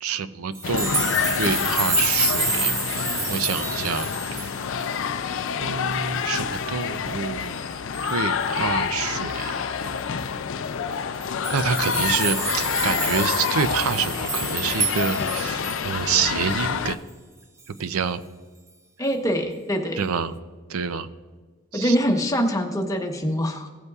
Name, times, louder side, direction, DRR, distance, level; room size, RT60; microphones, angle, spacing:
voice 1, 0.0-4.1 5.6-7.6 8.0-9.5 11.5-17.0 17.8-18.2 20.0-20.3 20.7-21.1 21.7-22.0, right 6 dB, 85° right, 13 dB, 0.5 m, -27 dB
sound 1, 0.5-5.1 5.5-5.6 5.9-6.0 6.4-6.8 7.9-8.2 9.8-9.9 10.2-10.3 11.1-16.0 16.5-16.6, right 2 dB, 15° right, 0.6 m, -28 dB
sound 2, 0.6-17.0, left 7 dB, 65° left, 0.4 m, -27 dB
voice 2, 19.0-20.0 21.7-23.7, equal, 15° left, 3 dB, 0.9 m, -24 dB
16.0 x 8.1 x 2.4 m, 1.4 s
head